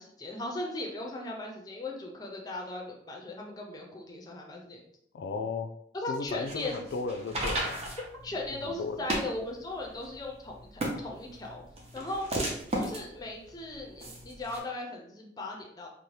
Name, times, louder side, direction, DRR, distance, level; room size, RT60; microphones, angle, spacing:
voice 1, 0.0-4.8 5.9-6.8 8.2-11.6 11.9-12.3 12.8-15.9, left 2 dB, 20° left, 0 dB, 0.4 m, -38 dB
voice 2, 5.1-5.7 6.1-7.8 8.5-9.1, left 4 dB, 85° left, 8 dB, 0.3 m, -35 dB
sound 1, 6.3-14.6, right 1 dB, 35° right, 0.5 m, -36 dB
2.7 x 2.1 x 3.1 m, 0.71 s
head